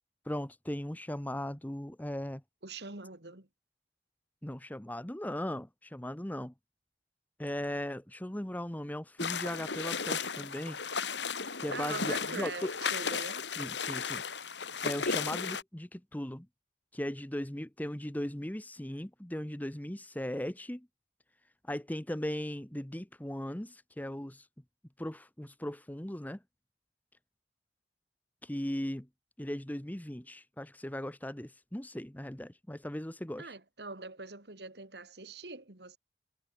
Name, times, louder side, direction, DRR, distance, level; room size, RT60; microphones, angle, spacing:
voice 1, 0.2-2.4 4.4-6.5 7.4-10.8 11.6-12.7 13.6-14.4 14.8-16.5 16.9-20.9 21.6-24.5 25.0-26.4 28.4-29.1 29.4-33.5, left 1 dB, 10° left, 1.0 m, -38 dB
voice 2, 2.6-3.5 11.7-13.5 33.4-36.0, right 3 dB, 70° right, 2.8 m, -43 dB
sound 1, 9.2-15.6, left 5 dB, 90° left, 3.1 m, -35 dB
head